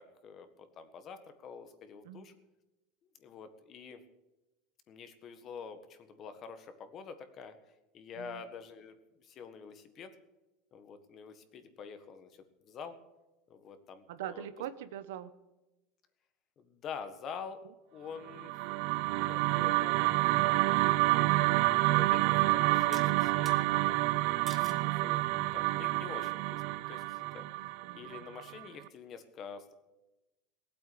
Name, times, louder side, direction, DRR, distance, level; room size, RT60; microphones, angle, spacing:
voice 1, 0.0-2.3 3.0-4.0 4.9-7.5 7.9-10.1 10.7-13.0 13.5-14.5 16.6-17.6 17.9-18.5 18.9-20.0 21.2-23.9 24.8-25.2 25.5-27.4 27.9-29.7, left 6 dB, 30° left, 10 dB, 1.6 m, -47 dB
voice 2, 14.1-15.3 24.5-25.0 27.5-28.1, right 11 dB, 85° right, 13 dB, 1.1 m, -43 dB
sound 1, 18.3-28.6, right 20 dB, 55° right, 0.5 m, -28 dB
sound 2, 22.9-23.6 24.5-24.9 25.5-25.9, right 6 dB, 20° right, 1.4 m, -48 dB
19.0 x 8.5 x 8.5 m, 1.0 s
supercardioid pair, 160°, 0 cm